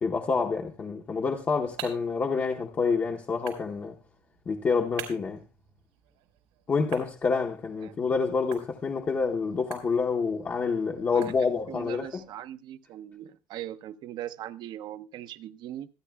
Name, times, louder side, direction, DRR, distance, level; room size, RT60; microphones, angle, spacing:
voice 1, 0.0-3.9 4.5-5.4 6.7-12.2, left 5 dB, 20° left, 0.8 m, -28 dB
sound 1, 1.1-11.9, right 11 dB, 85° right, 4.9 m, -48 dB
voice 2, 11.1-15.9, right 12 dB, 45° right, 0.7 m, -40 dB
26.0 x 9.7 x 2.3 m
cardioid pair, 175°, 11 cm